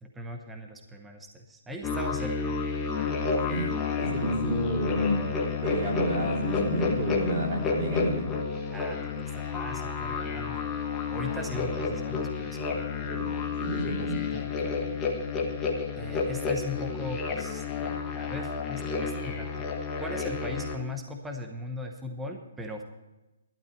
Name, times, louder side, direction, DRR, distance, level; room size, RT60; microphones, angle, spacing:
voice 1, 0.0-2.6 8.7-10.6 11.1-13.1 14.0-14.1 14.3-14.6 16.0-19.7 20.0-22.8, left 2 dB, 5° right, 3 dB, 0.8 m, -38 dB
sound 1, 1.8-20.8, left 5 dB, 10° left, 1.2 m, -30 dB
voice 2, 4.0-5.2 5.6-8.2 13.1-13.2 13.6-14.2, right 1 dB, 20° right, -3 dB, 3.5 m, -29 dB
12.0 x 11.5 x 4.5 m, 1.0 s
hypercardioid pair, 175°, 0 cm